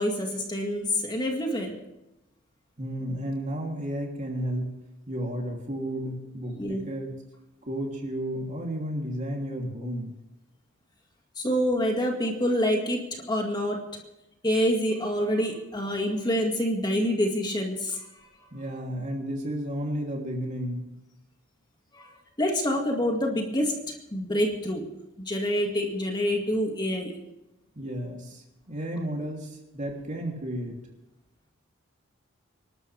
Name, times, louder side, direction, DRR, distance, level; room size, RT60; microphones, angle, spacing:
voice 1, 0.0-1.8 6.6-6.8 11.4-13.8 14.4-18.0 22.0-22.1 22.4-24.9 25.2-27.1, equal, 20° left, 2 dB, 2.0 m, -27 dB
voice 2, 2.8-4.7 5.1-7.1 7.6-10.1 18.5-20.9 27.8-30.8, equal, 35° right, 0 dB, 3.1 m, -32 dB
26.0 x 12.5 x 3.5 m, 0.94 s
head